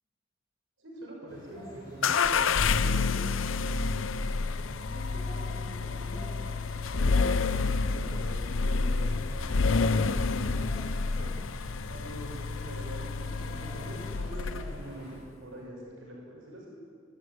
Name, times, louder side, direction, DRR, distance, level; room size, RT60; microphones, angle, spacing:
voice 1, 0.8-4.1 4.4-6.2 6.9-11.3 11.9-16.6, right 1 dB, 90° right, -2 dB, 6.3 m, -44 dB
sound 1, 1.3-15.2, equal, 20° left, 7.1 m, -49 dB
sound 2, 2.0-14.9, left 4 dB, 85° left, 0.7 m, -29 dB
23.0 x 14.0 x 8.7 m, 2.1 s
head